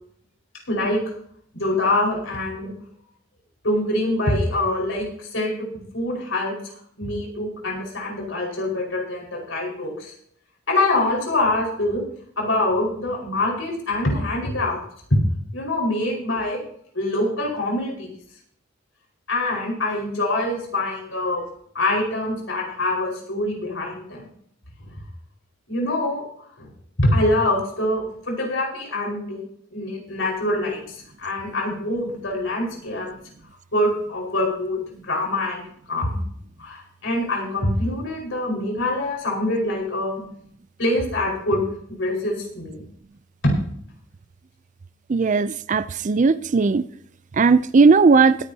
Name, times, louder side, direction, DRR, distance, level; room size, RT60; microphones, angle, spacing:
voice 1, 0.7-1.0 1.5-2.7 3.6-5.7 5.9-6.6 7.0-10.1 10.7-12.0 12.4-14.8 15.1-15.2 15.5-16.6 16.9-18.1 19.3-21.4 21.7-24.3 25.7-26.2 26.6-26.7 27.0-29.4 29.7-33.1 33.7-34.8 35.1-35.6 35.9-36.3 36.6-40.2 40.8-41.6 42.0-42.8 43.4-43.5, left 1 dB, 80° left, 5.0 m, -24 dB
voice 2, 45.1-46.8 47.4-48.4, right 4 dB, 40° right, 0.4 m, -17 dB
22.0 x 9.9 x 2.8 m
head